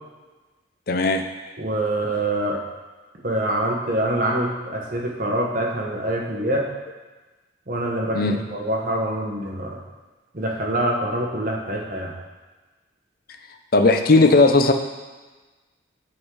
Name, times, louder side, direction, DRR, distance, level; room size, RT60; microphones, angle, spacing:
voice 1, 0.9-1.2 8.1-8.4 13.7-14.7, left 3 dB, 50° left, 6 dB, 0.6 m, -16 dB
voice 2, 1.6-2.6 3.2-6.6 7.7-9.8 10.3-12.1, right 1 dB, 45° right, -1 dB, 1.1 m, -25 dB
8.7 x 3.8 x 4.8 m, 1.2 s
head